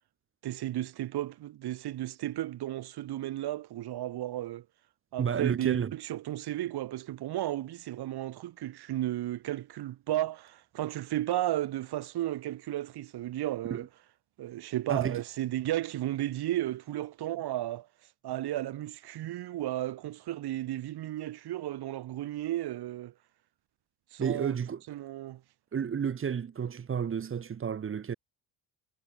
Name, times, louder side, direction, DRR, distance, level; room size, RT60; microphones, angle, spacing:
voice 1, 0.4-4.6 5.1-13.9 14.4-17.9 18.2-23.1 24.1-24.6 24.9-25.4, right 14 dB, 65° right, 2.7 m, -34 dB
voice 2, 5.2-5.9 13.7-13.8 14.9-15.2 24.2-24.8 25.7-28.1, right 7 dB, 30° right, 1.3 m, -31 dB
cardioid pair, 140°, 41 cm